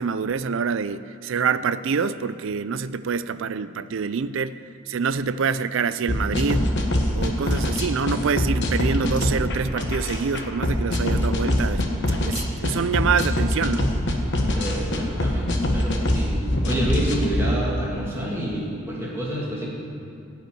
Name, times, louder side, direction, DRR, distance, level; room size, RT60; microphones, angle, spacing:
voice 1, 0.0-4.5 4.9-6.7 7.1-13.9, right 5 dB, 60° right, 14 dB, 0.4 m, -26 dB
sound 1, 6.1-17.5, left 1 dB, 50° left, 1.2 m, -23 dB
voice 2, 14.5-16.3 16.6-19.7, right 1 dB, 10° right, -5 dB, 2.5 m, -28 dB
14.5 x 5.6 x 9.3 m, 2.6 s
head